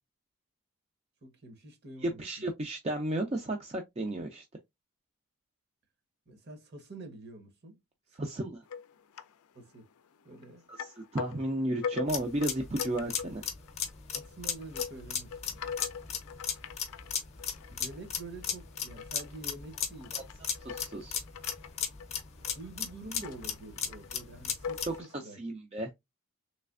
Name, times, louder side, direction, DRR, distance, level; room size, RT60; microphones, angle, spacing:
voice 1, 1.2-2.2 6.3-7.8 8.1-8.5 9.5-9.9 10.2-10.7 14.1-15.6 17.7-20.2 22.5-25.4, right 2 dB, 45° right, 0.9 m, -47 dB
voice 2, 2.0-4.4 8.2-8.6 10.7-13.4 20.6-21.2 24.9-25.9, right 1 dB, 30° right, 0.4 m, -33 dB
sound 1, 8.7-9.4 9.7-10.5 10.8-25.2, left 6 dB, 80° left, 0.4 m, -43 dB
sound 2, 12.1-25.0, left 8 dB, 30° left, 0.6 m, -35 dB
3.2 x 3.2 x 2.4 m
head